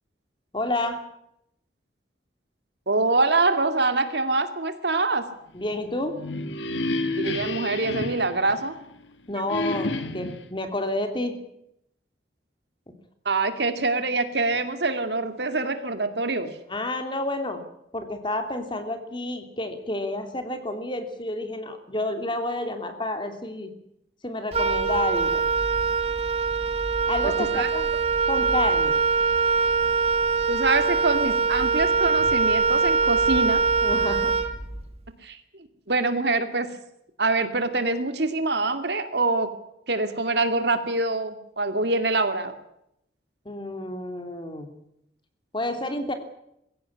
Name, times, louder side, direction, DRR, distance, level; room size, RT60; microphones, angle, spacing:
voice 1, 0.5-1.0 5.5-6.2 9.3-11.4 16.7-17.6 17.9-23.7 24.2-25.4 27.1-27.9 28.3-29.0 33.8-34.3 43.4-44.7 45.5-46.1, left 1 dB, 25° left, 7 dB, 2.9 m, -30 dB
voice 2, 2.9-5.2 7.2-8.7 13.2-16.5 27.2-27.7 30.5-33.6 35.2-35.4 35.9-36.7 37.2-39.5 39.9-42.6, right 3 dB, 65° right, 9 dB, 2.5 m, -25 dB
sound 1, 5.9-9.0 9.5-10.5, left 1 dB, 90° left, 2.1 m, -30 dB
Wind instrument woodwind instrument, 24.5-34.9, right 4 dB, 35° right, 2.0 m, -23 dB
22.0 x 16.5 x 9.8 m, 0.79 s
head